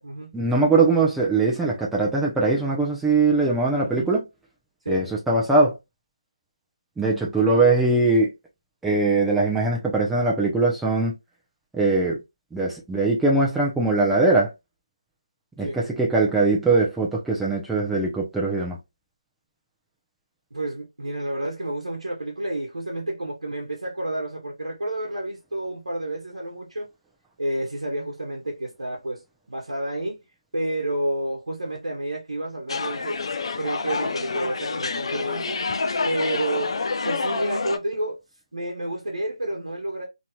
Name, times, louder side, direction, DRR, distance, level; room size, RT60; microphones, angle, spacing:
voice 1, 0.3-4.2 4.9-5.8 7.0-8.3 8.8-11.1 11.7-12.2 12.5-14.5 15.6-18.8, right 3 dB, 5° right, 0.6 m, -21 dB
voice 2, 20.5-26.9 27.4-29.2 29.5-30.2 30.5-33.2 33.5-35.6 36.1-38.2 38.5-40.0, right 1 dB, 90° right, 0.9 m, -30 dB
sound 1, 32.7-37.8, left 4 dB, 60° left, 0.4 m, -28 dB
2.9 x 2.8 x 2.2 m
figure-of-eight pair, 160°, 3 cm